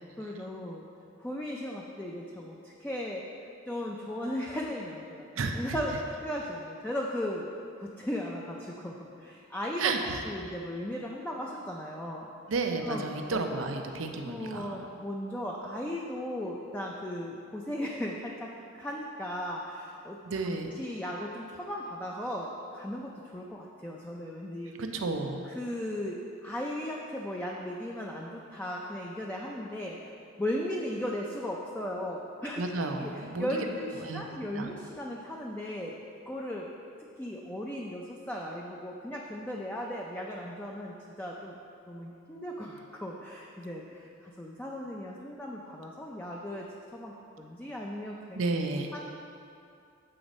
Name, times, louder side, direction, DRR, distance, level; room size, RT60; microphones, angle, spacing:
voice 1, 0.2-0.8 1.2-3.2 3.7-5.3 5.5-7.5 7.8-9.9 10.2-12.3 12.8-13.0 13.3-13.4 14.2-18.5 18.7-20.2 20.7-24.8 25.4-30.1 30.4-32.6 33.0-35.9 36.3-36.7 37.2-41.5 41.9-46.7 46.9-48.4 48.9-49.1, left 1 dB, 10° left, -2 dB, 0.4 m, -36 dB
voice 2, 5.4-5.8 9.8-10.2 12.5-14.9 20.3-20.7 24.8-25.5 32.6-33.5 34.0-34.3 34.6-34.7 48.3-48.9, right 3 dB, 90° right, 4 dB, 0.6 m, -32 dB
7.7 x 4.0 x 5.2 m, 2.5 s
head